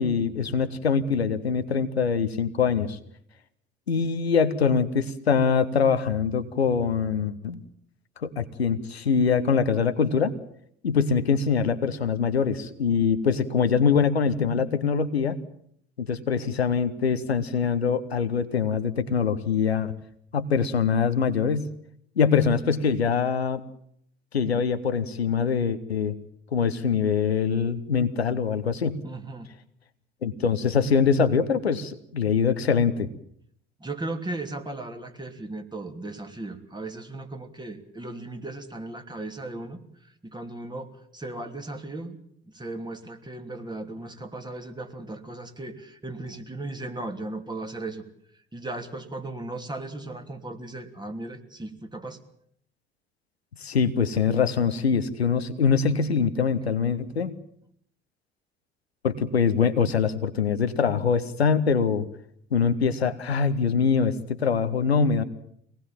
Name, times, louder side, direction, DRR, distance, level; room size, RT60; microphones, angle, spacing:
voice 1, 0.0-3.0 3.9-7.6 8.2-10.3 10.8-15.4 16.0-19.9 20.3-21.7 22.2-23.6 24.3-26.1 26.5-29.0 30.2-33.1 53.6-57.4 59.0-62.1 62.5-65.2, left 6 dB, 80° left, 11 dB, 1.1 m, -23 dB
voice 2, 29.0-29.5 33.8-42.2 42.5-48.0 48.5-52.2, right 2 dB, 15° right, 5 dB, 2.9 m, -36 dB
24.5 x 19.0 x 7.4 m, 0.68 s
figure-of-eight pair, 55°, 31 cm